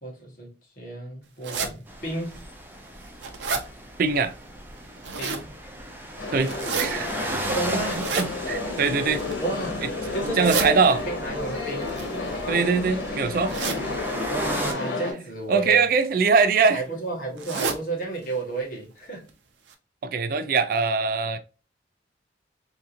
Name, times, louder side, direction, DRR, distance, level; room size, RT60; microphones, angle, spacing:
voice 1, 0.0-2.4 5.2-5.5 7.5-8.1 9.4-9.8 10.1-10.8 11.0-12.0 14.3-15.8 16.7-19.3, right 2 dB, 50° left, 1.5 m, -32 dB
sound 1, 1.4-1.7 2.4-2.5 2.9-3.6 4.8-5.5 6.4-6.9 7.9-8.3 9.0-9.5 10.2-10.7 11.8-12.8 13.5-13.8 14.5-14.7 15.7-16.0 16.4-16.5 16.7-16.8 17.4-17.8 18.2-18.3 18.6-18.7 19.3-19.4 19.7-19.8, right 4 dB, 90° right, 0.6 m, -30 dB
sound 2, 1.9-14.7, right 1 dB, 10° right, 0.6 m, -36 dB
voice 2, 4.0-4.3 6.3-6.5 6.8-7.4 7.7-7.8 8.2-9.2 10.1-11.0 12.5-13.5 14.4-14.5 15.5-16.8 20.0-21.4, right 5 dB, 50° right, 0.3 m, -22 dB
sound 3, 6.2-15.1, left 3 dB, 85° left, 1.4 m, -31 dB
3.6 x 2.9 x 2.5 m
head